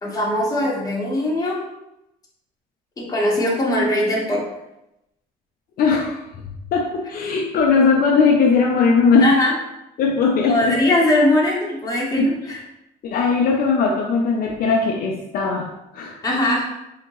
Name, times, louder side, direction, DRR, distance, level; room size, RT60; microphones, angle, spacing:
voice 1, 0.0-1.6 3.0-4.4 9.2-9.5 10.5-12.6 16.2-16.7, left 1 dB, 20° left, -3 dB, 1.2 m, -20 dB
voice 2, 5.8-6.2 6.7-9.3 10.0-10.8 12.2-12.3 13.0-16.2, left 5 dB, 60° left, 0 dB, 0.5 m, -19 dB
4.3 x 2.9 x 3.0 m, 0.89 s
cardioid pair, 110°, 17 cm